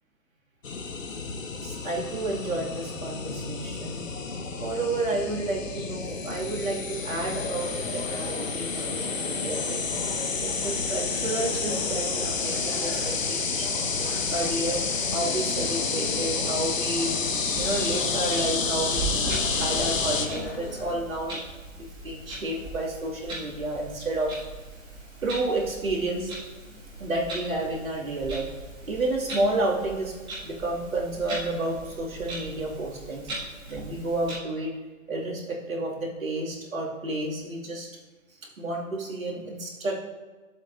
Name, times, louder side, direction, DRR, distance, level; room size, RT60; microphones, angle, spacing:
sound 1, 0.6-20.3, left 5 dB, 70° left, 1.1 m, -30 dB
voice 1, 1.5-4.2 4.6-9.9 10.4-13.8 14.3-14.8 15.1-17.1 17.6-21.4 21.8-24.3 25.2-26.3 27.0-28.5 28.8-30.1 30.4-33.3 33.7-34.7 35.1-37.9 38.6-39.9, right 2 dB, 75° right, -3 dB, 2.5 m, -31 dB
sound 2, 7.1-21.0, left 2 dB, 45° left, 1.7 m, -38 dB
Clock, 17.5-34.3, right 2 dB, 10° right, 2.2 m, -39 dB
13.0 x 7.4 x 2.6 m, 1.3 s
figure-of-eight pair, 140°, 41 cm